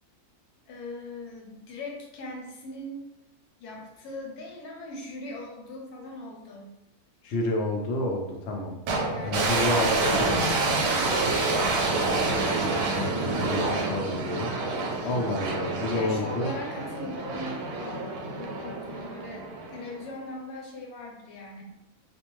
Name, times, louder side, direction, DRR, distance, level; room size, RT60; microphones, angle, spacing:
voice 1, 0.7-3.1 3.6-6.7 9.1-9.6 11.5-11.9 15.9-21.6, left 2 dB, 85° left, -1 dB, 1.1 m, -40 dB
voice 2, 7.2-8.8 9.2-10.6 12.9-14.5 15.0-16.5, left 2 dB, 65° left, 0 dB, 0.7 m, -29 dB
sound 1, 8.9-20.1, right 3 dB, 85° right, 1.1 m, -28 dB
2.5 x 2.2 x 2.9 m, 0.91 s
omnidirectional pair, 1.6 m